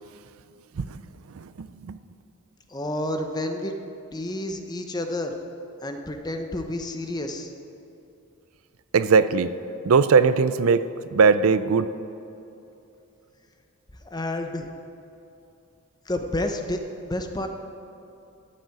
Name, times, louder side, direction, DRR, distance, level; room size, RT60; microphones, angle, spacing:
voice 1, 1.3-2.0 8.9-9.5 9.8-11.9, right 5 dB, 70° right, 14 dB, 0.4 m, -20 dB
voice 2, 2.7-3.7 4.1-5.3 5.8-7.5 14.0-14.7 16.1-16.8 17.1-17.5, left 1 dB, 20° left, 5 dB, 0.8 m, -30 dB
13.5 x 6.5 x 9.0 m, 2.8 s
head